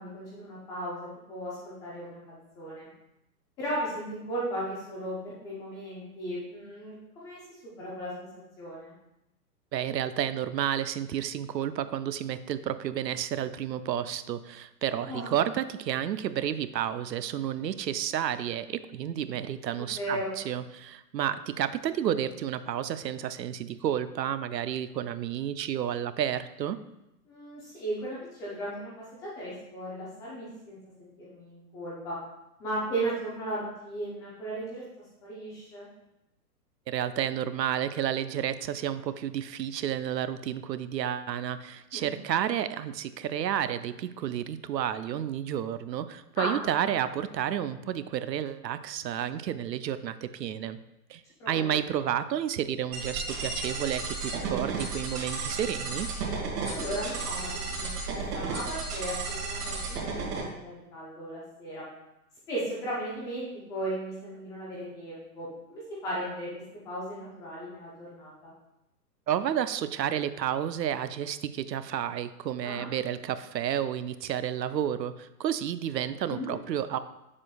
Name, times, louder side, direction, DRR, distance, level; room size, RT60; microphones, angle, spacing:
voice 1, 0.0-2.9 3.6-8.3 8.6-8.9 15.1-15.3 19.7-20.3 27.3-32.2 32.6-34.8 35.2-35.9 41.9-42.1 46.4-46.7 51.4-51.7 56.7-61.9 62.5-68.5 72.6-72.9 76.3-76.5, right 1 dB, 10° left, -6 dB, 0.4 m, -36 dB
voice 2, 9.7-20.2 20.5-26.8 36.9-50.8 51.1-56.1 69.3-77.0, right 10 dB, 85° right, 13 dB, 0.6 m, -31 dB
sound 1, 52.9-60.4, right 4 dB, 65° right, 2.1 m, -33 dB
7.3 x 6.4 x 2.3 m, 0.90 s
hypercardioid pair, 125°, 49 cm